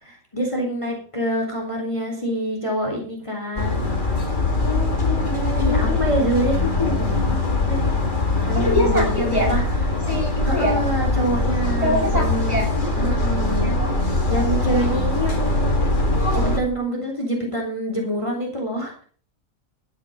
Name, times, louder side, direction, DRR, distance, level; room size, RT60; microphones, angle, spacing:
voice 1, 0.0-3.9 5.6-7.4 7.7-7.9 8.5-9.6 10.4-12.6 13.0-13.7 14.0-15.7 16.3-18.9, right 1 dB, 25° left, 0 dB, 3.4 m, -26 dB
sound 1, 3.6-16.6, left 2 dB, 40° left, 2.4 m, -22 dB
voice 2, 4.6-6.0 8.5-9.5 10.1-10.8 11.8-12.7 13.6-13.8, left 1 dB, 30° right, -2 dB, 7.3 m, -25 dB
13.0 x 9.2 x 5.2 m, 0.42 s
omnidirectional pair, 1.3 m